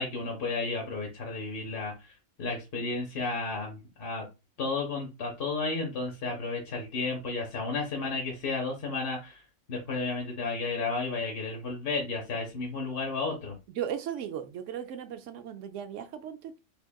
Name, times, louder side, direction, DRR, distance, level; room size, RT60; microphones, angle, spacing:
voice 1, 0.0-4.2 4.6-9.4 9.7-13.6, left 3 dB, 50° left, 0.9 m, -33 dB
voice 2, 13.8-16.6, right 9 dB, 70° right, 0.9 m, -36 dB
3.6 x 3.5 x 2.2 m
omnidirectional pair, 1.4 m